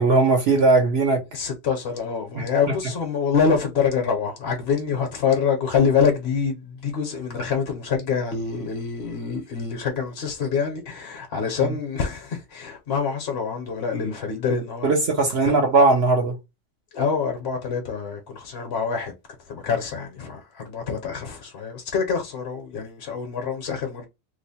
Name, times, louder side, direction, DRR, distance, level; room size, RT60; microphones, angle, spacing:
voice 1, 0.0-1.2 14.8-16.4, right 3 dB, 60° right, 0.9 m, -18 dB
voice 2, 1.3-14.9 15.4-15.6 16.9-19.1 19.4-24.1, left 6 dB, 55° left, 1.0 m, -25 dB
3.0 x 2.1 x 4.1 m
omnidirectional pair, 1.3 m